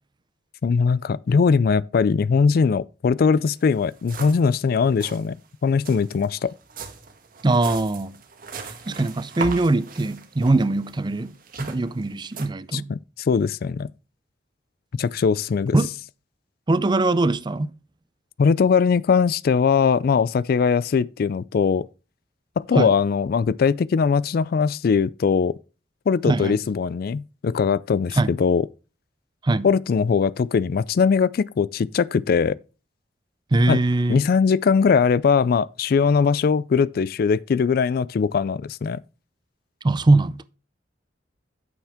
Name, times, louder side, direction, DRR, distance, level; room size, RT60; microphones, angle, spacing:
voice 1, 0.6-5.4 5.6-6.5 12.7-13.9 15.0-15.8 18.4-21.9 22.6-25.5 26.1-28.7 29.6-32.6 33.7-33.8 34.1-39.0, left 5 dB, 55° left, 0.3 m, -20 dB
sound 1, 3.6-3.7 3.9-4.5 4.8-5.2 5.8-12.5, right 4 dB, 50° right, 1.4 m, -38 dB
voice 2, 7.4-8.2 8.9-12.9 15.7-15.9 16.7-17.7 22.7-22.9 26.3-26.6 28.1-28.3 29.4-29.7 33.5-34.2 39.8-40.4, right 2 dB, 25° right, 0.5 m, -21 dB
9.1 x 7.2 x 3.5 m
head